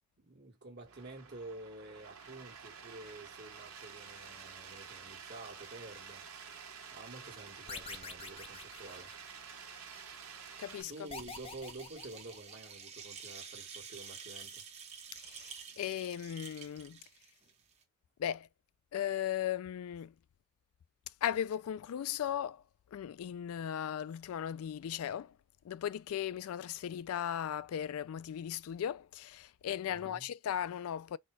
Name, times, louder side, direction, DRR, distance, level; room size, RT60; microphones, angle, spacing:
voice 1, 0.2-6.2 6.9-9.1 10.9-14.6 29.9-30.3, right 2 dB, 50° right, 1.5 m, -49 dB
sound 1, 0.8-10.8, right 6 dB, 85° right, 1.3 m, -50 dB
sound 2, 7.7-9.6 11.1-12.9, left 4 dB, 25° left, 0.7 m, -47 dB
sound 3, 9.4-17.8, right 6 dB, 30° right, 1.0 m, -50 dB
voice 2, 10.6-10.9 15.1-17.0 18.2-18.5 18.9-20.1 21.2-22.6 22.9-25.3 25.6-31.2, left 10 dB, 75° left, 0.3 m, -37 dB
4.3 x 2.3 x 4.5 m
head